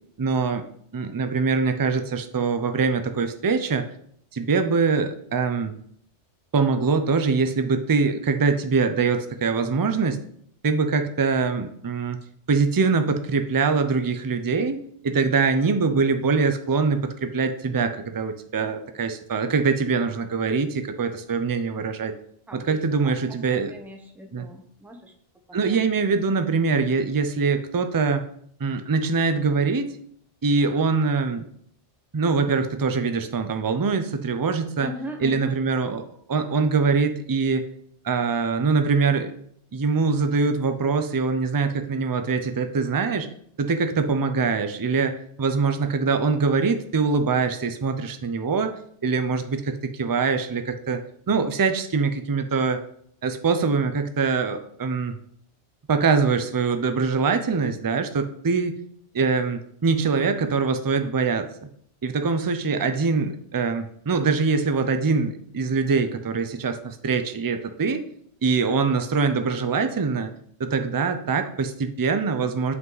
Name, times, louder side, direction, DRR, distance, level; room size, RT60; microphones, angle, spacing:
voice 1, 0.2-0.6 0.9-3.8 4.3-5.8 6.5-10.2 10.6-12.2 12.5-22.1 22.5-23.7 24.3-24.4 25.5-28.3 28.6-29.9 30.4-31.5 32.1-34.9 35.2-36.0 36.3-37.7 38.0-39.3 39.7-43.3 43.6-48.7 49.0-51.0 51.3-52.8 53.2-55.2 55.9-58.8 59.1-61.5 62.0-68.0 68.4-70.3 70.6-72.7, right 4 dB, 35° right, 8 dB, 0.3 m, -23 dB
voice 2, 22.5-25.1 25.5-26.1 34.8-35.5, right 1 dB, ahead, 3 dB, 0.8 m, -39 dB
7.5 x 5.4 x 4.0 m, 0.67 s
omnidirectional pair, 1.2 m